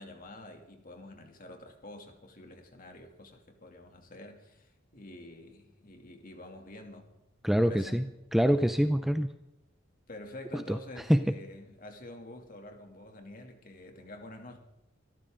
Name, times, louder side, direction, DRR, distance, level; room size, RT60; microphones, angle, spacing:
voice 1, 0.0-7.1 7.5-8.1 10.1-14.6, left 1 dB, 45° left, 4 dB, 2.7 m, -48 dB
voice 2, 7.4-8.0 8.3-9.3 10.5-10.8 11.1-11.3, equal, ahead, 9 dB, 0.5 m, -25 dB
25.5 x 14.0 x 3.9 m, 0.94 s
head